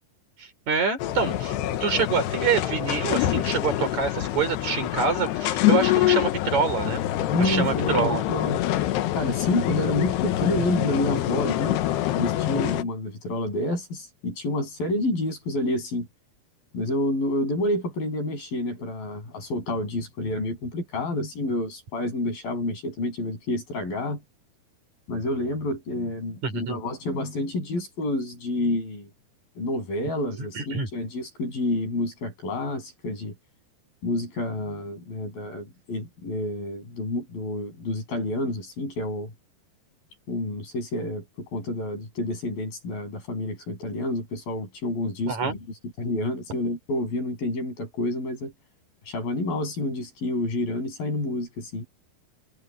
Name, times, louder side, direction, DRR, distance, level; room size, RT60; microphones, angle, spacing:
voice 1, 0.4-7.0 7.4-8.2 26.4-26.8 30.4-30.9 45.3-45.6, right 5 dB, 45° right, 5.9 m, -26 dB
sound 1, 1.0-12.8, left 14 dB, 90° left, 3.2 m, -25 dB
voice 2, 7.3-8.6 9.1-11.8 12.1-16.1 16.7-24.2 25.1-29.1 29.6-33.4 34.0-39.3 40.3-45.6 46.0-48.5 49.1-51.9, left 1 dB, 60° left, 9.5 m, -29 dB
omnidirectional pair, 4.7 m